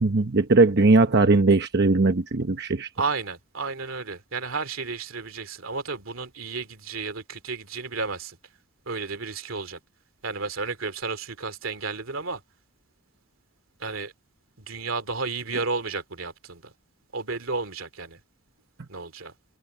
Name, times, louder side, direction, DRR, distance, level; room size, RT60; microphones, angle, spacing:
voice 1, 0.0-2.9, right 3 dB, 55° right, 1.0 m, -19 dB
voice 2, 3.0-8.4 8.9-9.8 10.2-12.4 13.8-14.1 14.6-16.7 17.1-18.2 18.9-19.3, right 4 dB, 80° right, 2.6 m, -32 dB
head